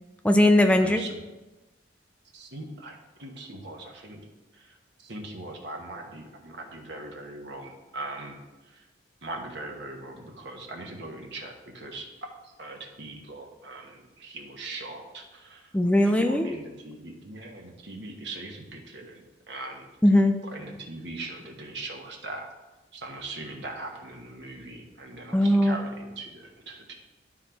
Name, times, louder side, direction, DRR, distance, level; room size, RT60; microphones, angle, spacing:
voice 1, 0.2-1.0 15.7-16.6 20.0-20.4 25.3-25.8, left 1 dB, 5° left, 5 dB, 0.4 m, -19 dB
voice 2, 0.8-1.1 2.3-4.2 5.0-8.4 9.2-12.1 12.6-15.6 16.1-19.9 20.4-22.5 22.9-27.0, right 2 dB, 65° right, 2 dB, 1.3 m, -40 dB
11.0 x 3.9 x 4.5 m, 1.1 s
head